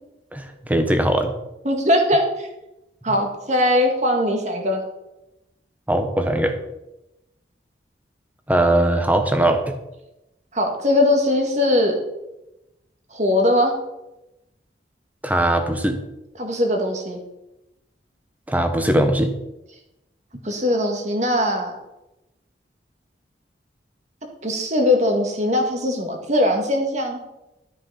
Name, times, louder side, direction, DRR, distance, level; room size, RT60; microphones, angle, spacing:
voice 1, 0.3-1.3 5.9-6.5 8.5-9.7 15.2-16.0 18.5-19.3, right 1 dB, 10° right, 7 dB, 1.0 m, -20 dB
voice 2, 1.6-2.5 3.0-4.8 10.5-11.9 13.1-13.7 16.4-17.2 20.4-21.7 24.4-27.2, left 1 dB, 40° right, 2 dB, 2.0 m, -20 dB
13.0 x 6.3 x 5.7 m, 0.94 s
head